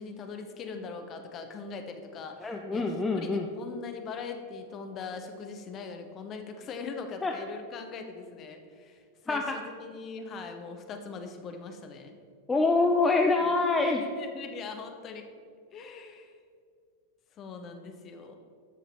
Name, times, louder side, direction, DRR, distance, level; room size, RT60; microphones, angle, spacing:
voice 1, 0.0-12.2 13.4-13.5 13.8-15.3 15.7-16.3 17.3-18.4, left 5 dB, 30° left, 5 dB, 0.9 m, -41 dB
voice 2, 2.4-3.5 7.2-7.3 9.3-9.6 12.5-14.0, left 3 dB, 15° left, 3 dB, 0.6 m, -25 dB
10.0 x 6.1 x 4.6 m, 2.2 s
figure-of-eight pair, 90°, 0 cm